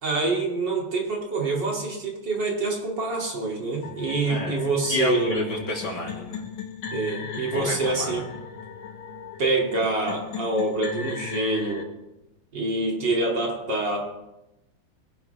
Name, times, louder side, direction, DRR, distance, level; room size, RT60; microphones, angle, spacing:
voice 1, 0.0-5.4 6.9-8.3 9.4-11.8 12.5-14.2, right 3 dB, 55° right, -1 dB, 3.1 m, -26 dB
sound 1, 3.8-11.8, left 6 dB, 70° left, 1.9 m, -38 dB
voice 2, 4.9-6.4 7.5-8.1, left 2 dB, 50° left, -2 dB, 3.5 m, -29 dB
21.0 x 12.0 x 3.4 m, 0.93 s
omnidirectional pair, 2.3 m